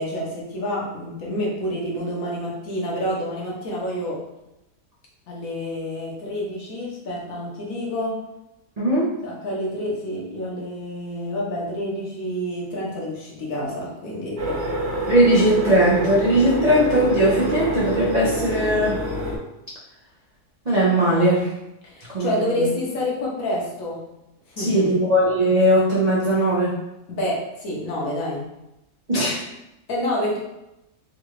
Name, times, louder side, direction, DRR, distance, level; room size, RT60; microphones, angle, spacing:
voice 1, 0.0-4.2 5.3-8.2 9.2-14.6 21.8-24.1 24.5-25.0 27.1-28.5 29.9-30.4, left 1 dB, 65° left, -4 dB, 1.2 m, -28 dB
voice 2, 8.8-9.1 15.1-19.0 20.7-21.5 22.1-22.3 22.6-22.7 24.6-26.8 29.1-29.4, equal, 75° right, -6 dB, 0.3 m, -19 dB
sound 1, 14.4-19.4, right 1 dB, 50° right, 0.8 m, -26 dB
3.8 x 2.3 x 3.0 m, 0.90 s
omnidirectional pair, 1.7 m